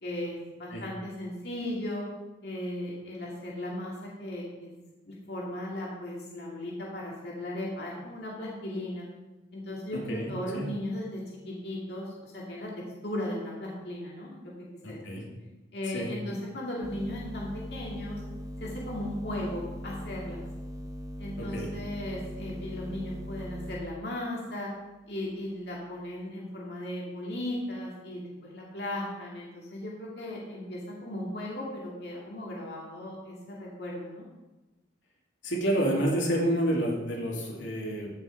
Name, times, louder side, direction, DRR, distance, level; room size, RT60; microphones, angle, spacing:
voice 1, 0.0-2.0 2.4-4.7 5.1-9.1 9.5-12.7 13.0-14.4 14.9-15.0 15.7-18.2 18.6-20.4 21.2-24.7 25.1-34.3, left 1 dB, 60° left, -4 dB, 2.2 m, -36 dB
voice 2, 10.1-10.7 14.8-15.2 15.9-16.1 21.4-21.7 35.4-38.1, right 1 dB, 90° left, -3 dB, 2.6 m, -29 dB
sound 1, 16.8-23.8, equal, 20° right, 1.1 m, -40 dB
14.5 x 6.3 x 4.5 m, 1.1 s
head